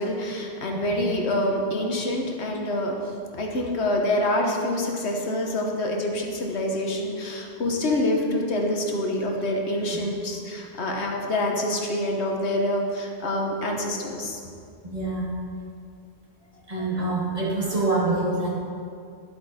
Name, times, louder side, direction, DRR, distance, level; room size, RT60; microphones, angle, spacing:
voice 1, 0.0-14.4, left 1 dB, 80° left, 0 dB, 1.4 m, -26 dB
voice 2, 14.8-15.3 16.7-18.5, right 2 dB, 35° right, -5 dB, 1.9 m, -26 dB
11.0 x 8.0 x 4.2 m, 2.3 s
omnidirectional pair, 1.1 m